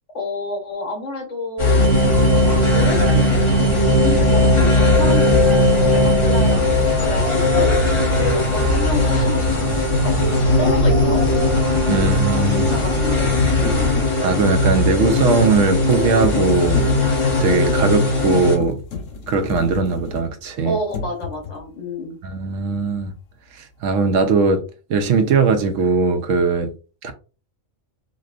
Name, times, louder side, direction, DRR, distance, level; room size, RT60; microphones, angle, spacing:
voice 1, 0.1-1.8 2.5-5.7 5.9-7.8 8.1-9.4 10.0-11.5 12.0-14.0 20.6-22.2, left 2 dB, 70° left, 1.4 m, -29 dB
sound 1, 1.6-18.6, left 3 dB, 25° left, 1.0 m, -19 dB
sound 2, 1.8-14.0, right 4 dB, 55° right, 0.8 m, -22 dB
sound 3, 8.5-8.7 11.8-20.5 20.9-21.7, left 5 dB, 85° left, 1.2 m, -32 dB
voice 2, 11.9-12.7 14.2-16.8 17.4-18.8 19.3-20.8 22.2-23.1 23.6-24.6 24.9-26.7 27.0-27.1, right 4 dB, 90° right, 1.0 m, -19 dB
5.0 x 2.2 x 2.5 m
omnidirectional pair, 1.3 m